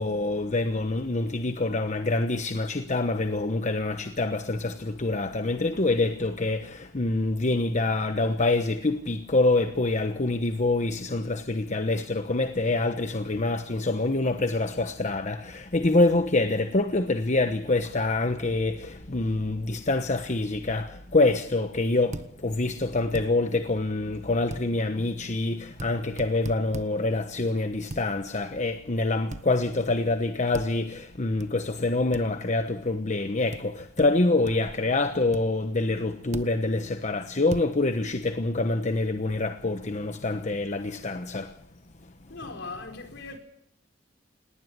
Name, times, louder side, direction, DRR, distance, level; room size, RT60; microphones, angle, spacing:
voice 1, 0.0-41.5, left 2 dB, 40° left, 1.1 m, -26 dB
sound 1, 22.1-22.3 23.1-23.3 24.5-24.7 25.8-25.9 26.2-26.9 27.9-28.0 29.3-29.5 30.5-30.7 31.4-31.5 32.1-32.2 33.5-33.6 34.0-34.1 34.5-34.8 35.3-35.4 36.3-36.5 37.5-37.7, right 1 dB, 40° right, 1.2 m, -36 dB
voice 2, 42.3-43.4, left 3 dB, 65° left, 4.6 m, -39 dB
19.5 x 19.0 x 9.7 m
head